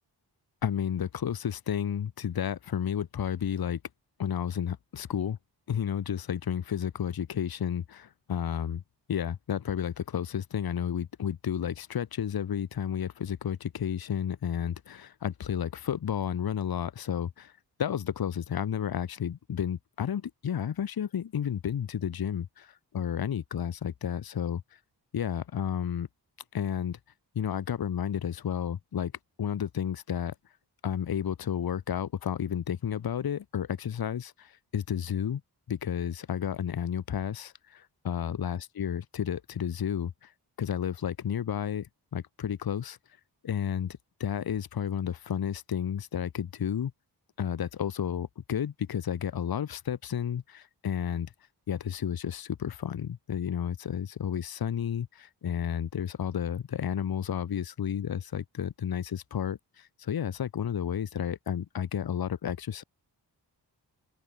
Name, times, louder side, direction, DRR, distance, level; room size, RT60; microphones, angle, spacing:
voice 1, 0.6-3.8 4.2-5.4 5.7-8.8 9.1-17.5 17.8-24.8 25.1-26.1 26.5-27.0 27.3-29.1 29.4-30.3 30.8-35.4 35.7-40.3 40.6-43.0 43.4-46.9 47.4-51.3 51.7-62.8, left 9 dB, 60° left, 0.9 m, -32 dB
open air
wide cardioid pair, 130°, 41 cm